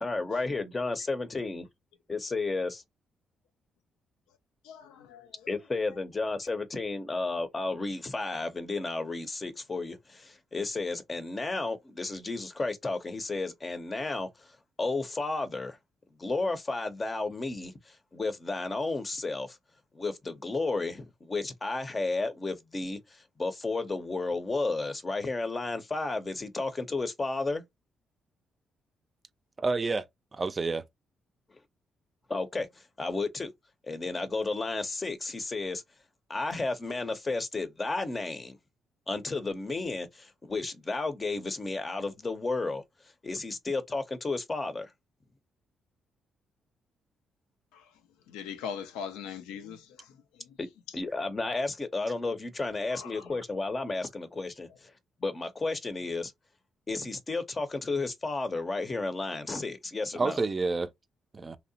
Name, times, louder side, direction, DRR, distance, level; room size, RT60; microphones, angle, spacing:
voice 1, 0.0-1.7 2.1-2.8 5.5-14.5 14.8-15.8 16.2-19.6 19.9-27.6 32.3-33.5 33.9-35.8 36.3-38.6 39.1-42.8 43.2-44.9 50.6-50.7 50.9-54.9 55.2-56.3 56.9-60.4, left 3 dB, 35° left, 0.6 m, -32 dB
voice 2, 4.6-5.5 47.7-47.8 48.3-50.6 52.9-53.4, left 7 dB, 85° left, 0.4 m, -41 dB
voice 3, 29.6-30.1 30.3-30.8 60.1-60.9 61.3-61.6, right 3 dB, 35° right, 0.4 m, -29 dB
2.7 x 2.0 x 2.7 m
supercardioid pair, 55°, 0 cm